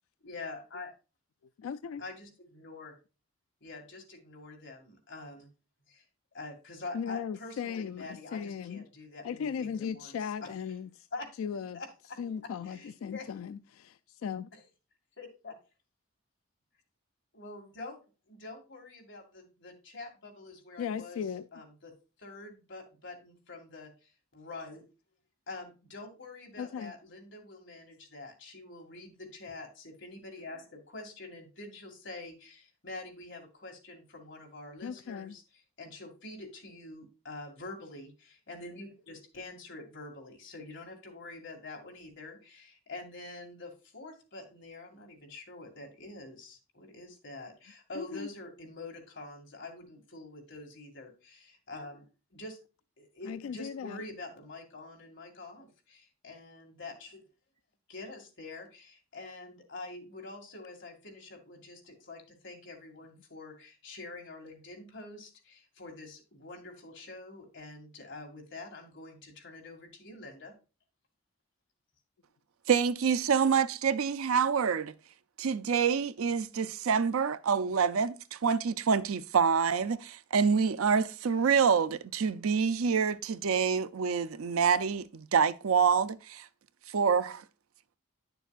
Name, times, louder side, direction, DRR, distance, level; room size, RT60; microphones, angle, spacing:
voice 1, 0.2-0.9 2.0-3.0 3.6-5.5 5.9-6.0 6.3-10.5 11.1-11.3 11.7-13.3 14.5-14.6 15.2-15.6 17.3-18.0 18.3-21.2 21.5-24.9 25.5-35.4 35.8-52.6 53.0-57.2 57.9-70.5, left 2 dB, 55° left, 2.1 m, -46 dB
voice 2, 1.6-2.0 6.9-8.8 9.2-11.1 11.4-11.8 12.2-14.5 20.8-21.5 26.6-26.9 34.8-35.4 47.9-48.3 53.2-54.0, left 7 dB, 70° left, 0.3 m, -37 dB
voice 3, 72.7-74.9 75.4-86.5 86.9-87.4, right 6 dB, 75° right, 0.5 m, -27 dB
10.0 x 6.9 x 2.4 m
head